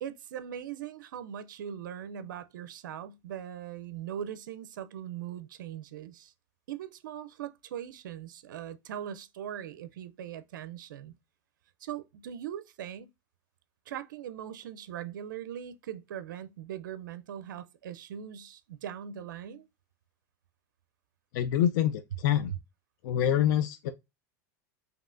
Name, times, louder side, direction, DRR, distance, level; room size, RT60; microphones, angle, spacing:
voice 1, 0.0-6.3 6.7-11.1 11.8-13.1 13.9-19.6, right 10 dB, 90° right, 0.5 m, -40 dB
voice 2, 21.3-22.5 23.0-23.9, left 10 dB, 70° left, 0.5 m, -26 dB
5.3 x 2.8 x 2.5 m
supercardioid pair, 125°, 10 cm